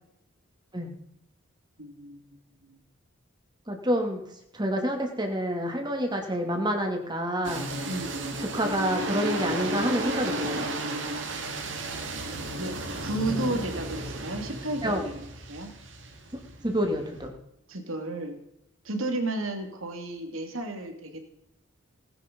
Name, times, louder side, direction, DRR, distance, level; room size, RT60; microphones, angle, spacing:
voice 1, 1.8-2.2 2.6-2.8 7.9-8.2 12.6-12.7 13.0-15.7 17.7-18.4 18.8-21.2, right 2 dB, 75° right, 5 dB, 2.9 m, -33 dB
voice 2, 3.7-4.2 4.5-7.7 8.4-10.7 13.4-13.6 14.8-15.0 16.6-17.3, equal, 20° right, 4 dB, 2.7 m, -28 dB
sound 1, 7.4-17.3, right 1 dB, 60° right, 2.5 m, -33 dB
18.5 x 10.0 x 5.4 m, 0.81 s
head